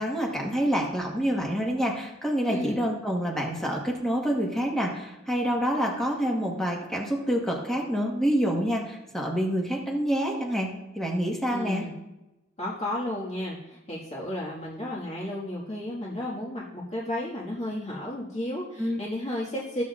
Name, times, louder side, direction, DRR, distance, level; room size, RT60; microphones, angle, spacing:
voice 1, 0.0-10.7 10.9-11.8 18.8-19.0, equal, ahead, -2 dB, 1.3 m, -27 dB
voice 2, 2.5-2.8 11.5-11.9 12.6-19.8, left 1 dB, 35° left, -7 dB, 1.7 m, -33 dB
15.0 x 7.6 x 2.5 m, 0.96 s
head